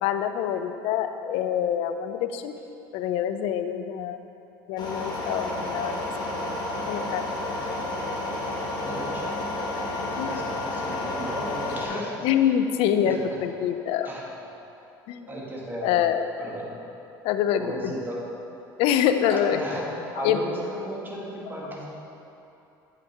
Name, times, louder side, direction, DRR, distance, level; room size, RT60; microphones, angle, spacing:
voice 1, 0.0-2.5 2.9-4.2 4.7-6.1 6.9-7.3 10.1-10.3 11.9-14.1 15.1-15.3 15.8-16.3 17.2-17.9 18.8-19.6 20.2-20.4, left 9 dB, 65° left, 9 dB, 0.4 m, -25 dB
sound 1, 4.8-11.9, left 2 dB, 40° left, 1.6 m, -31 dB
voice 2, 8.8-9.4 10.3-12.5 13.0-13.2 14.0-14.2 15.3-15.9 16.4-16.7 17.6-18.2 19.3-19.9 20.1-21.9, right 1 dB, 20° right, -3 dB, 1.6 m, -35 dB
7.8 x 5.8 x 3.3 m, 2.9 s
hypercardioid pair, 75°, 11 cm